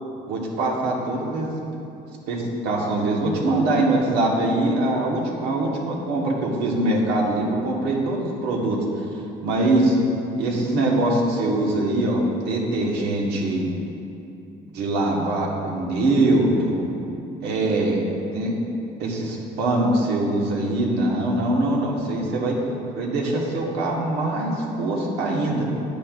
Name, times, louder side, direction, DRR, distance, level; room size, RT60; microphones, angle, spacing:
voice 1, 0.3-1.6 2.3-8.8 9.4-10.0 10.4-13.7 14.7-16.9 17.4-18.0 18.3-18.5 19.0-22.6 23.0-25.6, right 2 dB, 90° right, -2 dB, 1.3 m, -23 dB
9.8 x 8.3 x 2.4 m, 2.7 s
cardioid pair, 110°, 17 cm